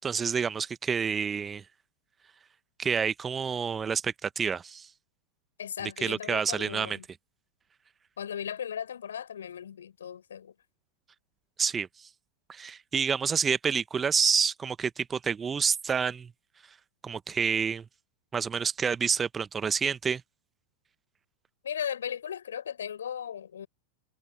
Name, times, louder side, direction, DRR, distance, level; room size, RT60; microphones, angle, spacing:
voice 1, 0.0-1.6 2.8-4.9 6.0-7.0 11.6-12.1 12.5-16.3 17.0-17.8 18.3-20.2, right 6 dB, 20° right, 1.1 m, -28 dB
voice 2, 5.6-7.1 8.2-10.5 21.6-23.7, left 8 dB, 65° left, 5.5 m, -37 dB
figure-of-eight pair, 90°, 0 cm